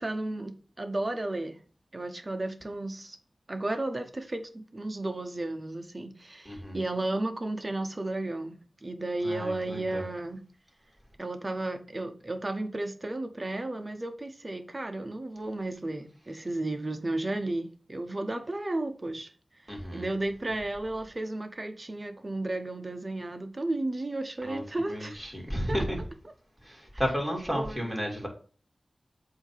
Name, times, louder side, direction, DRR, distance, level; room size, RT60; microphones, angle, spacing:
voice 1, 0.0-1.6 1.9-3.2 3.5-8.6 8.8-10.4 11.2-19.3 19.6-25.3 25.7-25.8 27.5-27.9, right 2 dB, 30° right, 1.0 m, -33 dB
voice 2, 6.4-6.8 9.2-10.0 19.7-20.1 24.4-26.0 26.6-28.3, equal, 5° right, 2.9 m, -33 dB
7.8 x 2.9 x 5.7 m
wide cardioid pair, 95°, 0 cm